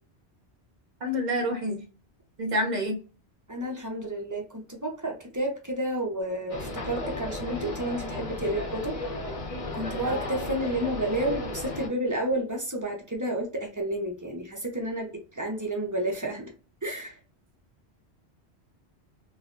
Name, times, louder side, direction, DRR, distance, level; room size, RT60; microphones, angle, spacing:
voice 1, 1.0-1.8 2.4-3.0, equal, 45° right, 3 dB, 0.8 m, -27 dB
voice 2, 3.5-9.0 9.7-16.5 16.8-17.2, right 1 dB, 25° right, 1 dB, 0.5 m, -31 dB
sound 1, 6.5-11.9, left 2 dB, 35° left, 0.8 m, -34 dB
3.1 x 2.3 x 2.5 m, 0.37 s
omnidirectional pair, 1.1 m